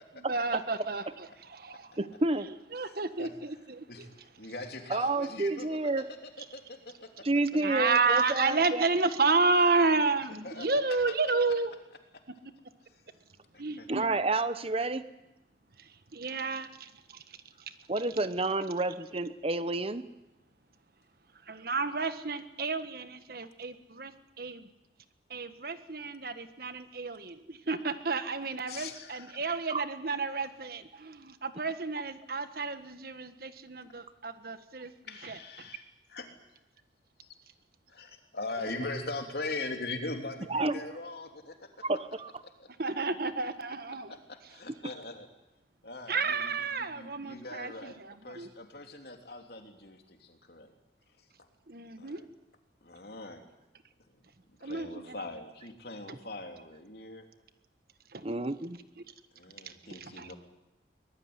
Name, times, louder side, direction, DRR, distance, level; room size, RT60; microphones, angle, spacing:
voice 1, 0.1-2.0 2.7-4.1 7.6-11.7 13.6-14.1 15.8-17.4 17.7-17.8 21.5-24.7 25.3-34.9 35.2-35.7 42.8-44.2 46.1-48.5 51.7-52.3 54.6-55.2 58.1-58.3 59.6-60.3, right 4 dB, 55° right, 10 dB, 1.5 m, -31 dB
voice 2, 2.0-2.5 4.9-6.0 7.2-8.9 13.9-15.0 17.9-20.1 29.7-29.8 40.5-40.8 41.8-42.3 58.2-58.8, right 2 dB, 35° right, 13 dB, 0.9 m, -29 dB
voice 3, 2.8-3.3 3.9-4.1 4.4-6.2 6.5-7.3 10.4-10.7 12.1-12.2 12.8-13.0 13.5-13.9 28.7-29.6 35.1-36.3 37.2-37.3 37.9-41.8 42.6-42.7 44.1-45.3 45.8-50.7 51.2-51.5 52.0-52.2 52.8-53.5 54.1-54.2 54.6-57.3 59.3-60.3, left 2 dB, 60° left, 4 dB, 3.3 m, -41 dB
23.5 x 19.5 x 9.7 m, 0.93 s
head